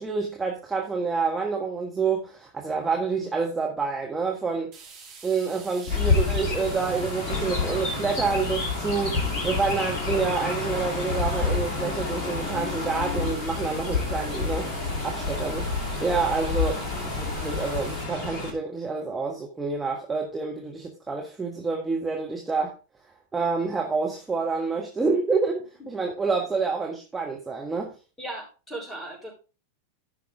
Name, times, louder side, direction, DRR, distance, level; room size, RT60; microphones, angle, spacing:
voice 1, 0.0-4.7 5.2-22.7 23.3-27.9, right 4 dB, 10° right, 1.5 m, -28 dB
sound 1, 4.7-18.0, right 5 dB, 40° right, 3.8 m, -46 dB
Chirp tweet, 5.9-18.5, left 3 dB, 40° left, 2.9 m, -28 dB
voice 2, 28.2-29.3, right 1 dB, 10° left, 5.3 m, -37 dB
14.5 x 5.9 x 3.6 m
figure-of-eight pair, 90°, 0 cm